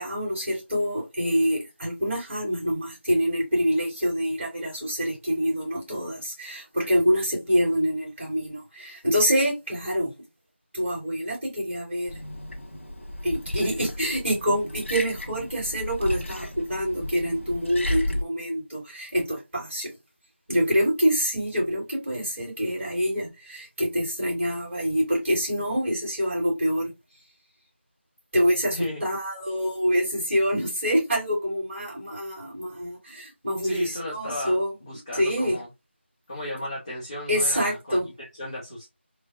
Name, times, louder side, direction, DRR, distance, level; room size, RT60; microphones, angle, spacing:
voice 1, 0.0-10.1 10.7-12.2 13.2-19.9 20.5-26.9 28.3-34.7 35.2-35.6 37.3-38.0, equal, 10° right, 2.4 m, -26 dB
Liquid, 12.1-18.2, left 1 dB, 80° left, 1.7 m, -33 dB
voice 2, 28.7-29.0 33.6-35.7 36.3-38.9, left 1 dB, 25° left, 1.0 m, -34 dB
3.6 x 3.3 x 2.4 m
figure-of-eight pair, 180°, 7 cm